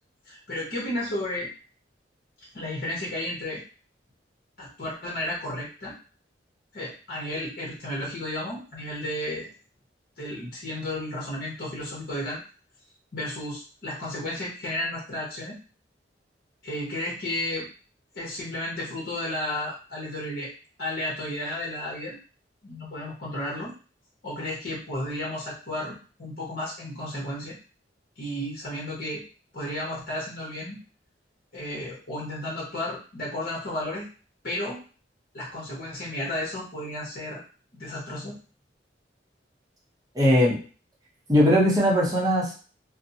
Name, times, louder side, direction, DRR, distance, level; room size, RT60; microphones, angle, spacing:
voice 1, 0.3-1.5 2.4-3.6 4.6-6.0 6.7-9.5 10.2-12.4 13.1-15.6 16.6-17.7 18.1-20.5 20.8-22.2 22.6-23.7 24.2-27.6 28.2-29.2 29.5-30.8 31.5-34.1 34.4-34.8 35.3-37.4 37.7-38.4, left 1 dB, 55° left, -5 dB, 0.9 m, -33 dB
voice 2, 40.1-40.6 41.3-42.5, equal, 20° right, -4 dB, 0.7 m, -20 dB
2.5 x 2.0 x 2.6 m, 0.37 s
head